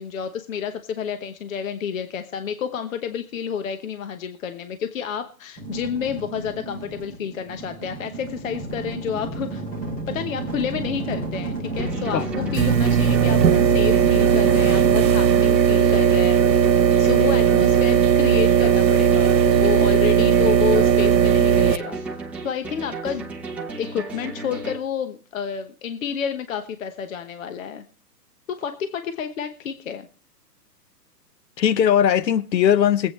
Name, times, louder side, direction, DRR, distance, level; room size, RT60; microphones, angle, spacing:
voice 1, 0.0-9.6 10.1-16.5 17.0-22.0 22.4-23.3 23.8-27.8 28.5-30.1, left 7 dB, 50° left, 1.1 m, -30 dB
sound 1, 5.6-16.6, right 3 dB, 15° left, 2.7 m, -31 dB
sound 2, 11.8-24.8, right 3 dB, 5° right, 0.9 m, -34 dB
voice 2, 12.1-12.5 31.6-33.1, left 9 dB, 80° left, 0.9 m, -19 dB
sound 3, 12.5-21.8, right 8 dB, 80° right, 1.2 m, -17 dB
23.0 x 8.5 x 3.2 m
hypercardioid pair, 155°, 50 cm